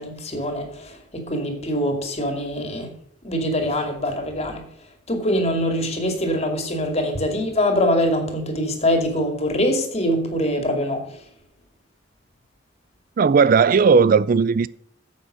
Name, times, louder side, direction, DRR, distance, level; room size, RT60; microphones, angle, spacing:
voice 1, 0.0-2.9 3.2-4.6 5.1-11.2, equal, 35° left, 2.5 m, -23 dB
voice 2, 13.2-14.7, right 5 dB, 45° right, 0.4 m, -16 dB
10.0 x 8.0 x 6.2 m
head